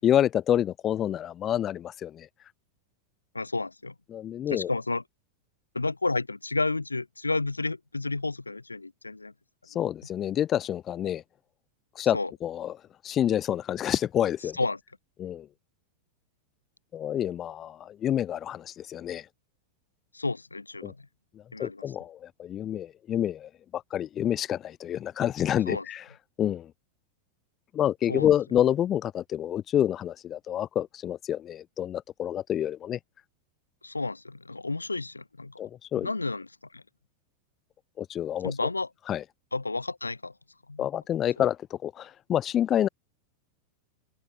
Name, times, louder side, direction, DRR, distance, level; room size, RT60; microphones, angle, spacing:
voice 1, 0.0-2.3 4.1-4.7 9.7-11.2 12.0-14.6 15.2-15.5 16.9-19.3 20.8-20.9 21.3-26.0 26.4-26.7 27.7-33.0 35.6-36.1 38.0-38.7 39.1-39.2 40.8-42.9, left 10 dB, 30° left, 0.5 m, -28 dB
voice 2, 3.3-3.9 4.5-5.0 5.7-9.3 12.1-12.3 14.6-14.8 20.1-21.1 21.5-21.8 25.7-25.8 28.1-28.3 33.8-35.6 36.0-36.5 36.7-36.8 38.4-38.9 39.5-40.3 40.7-40.9, left 3 dB, 80° left, 0.7 m, -31 dB
figure-of-eight pair, 90°, 0 cm